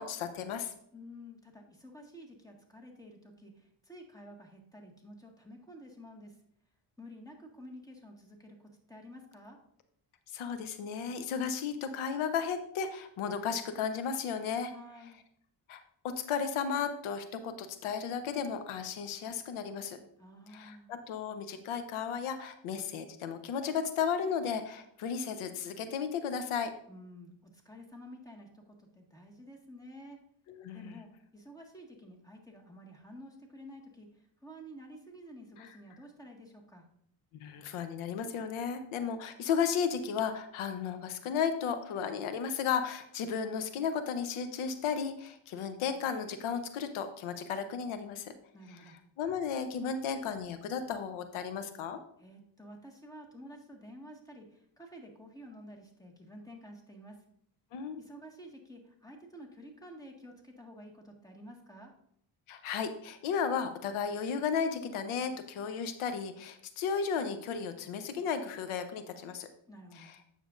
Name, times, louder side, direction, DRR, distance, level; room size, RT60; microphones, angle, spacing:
voice 1, 0.0-0.7 10.3-14.7 15.7-20.0 20.5-26.7 30.5-31.0 37.4-48.3 49.2-52.0 57.7-58.0 62.5-69.5 70.0-70.1, left 6 dB, 85° left, 9 dB, 0.8 m, -34 dB
voice 2, 0.9-6.4 7.0-9.6 14.6-15.2 20.2-20.9 26.9-30.2 30.7-36.9 48.5-49.0 52.2-57.2 58.0-61.9 69.7-70.1, equal, 5° left, 1 dB, 1.7 m, -51 dB
9.0 x 6.8 x 2.5 m, 0.68 s
cardioid pair, 85°, 49 cm